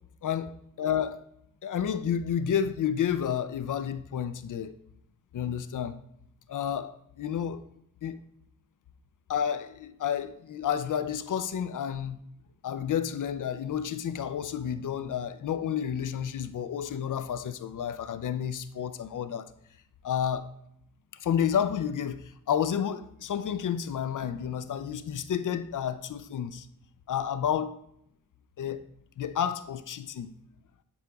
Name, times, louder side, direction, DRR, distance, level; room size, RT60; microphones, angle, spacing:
voice 1, 0.2-1.2 1.6-4.8 5.3-6.0 6.5-7.6 8.0-8.2 9.3-12.2 12.6-19.5 20.0-20.5 21.2-26.7 27.1-27.8 28.6-28.8 29.2-30.3, left 8 dB, 60° left, 0.5 m, -30 dB
9.4 x 5.0 x 2.3 m
cardioid pair, 80°, 35 cm